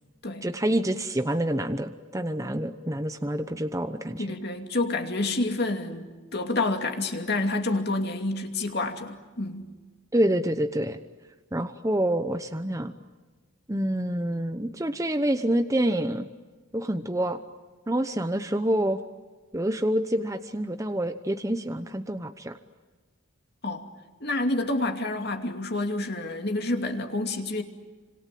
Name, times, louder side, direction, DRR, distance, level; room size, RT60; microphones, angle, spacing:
voice 1, 0.4-4.3 10.1-11.0 11.5-12.9 13.7-16.3 16.7-17.4 17.9-19.0 19.5-22.6, right 1 dB, 15° right, 8 dB, 0.9 m, -27 dB
voice 2, 4.2-6.0 6.3-9.7 23.6-23.8 24.2-27.6, left 2 dB, 50° left, 4 dB, 2.7 m, -28 dB
28.5 x 26.5 x 7.7 m, 1.3 s
head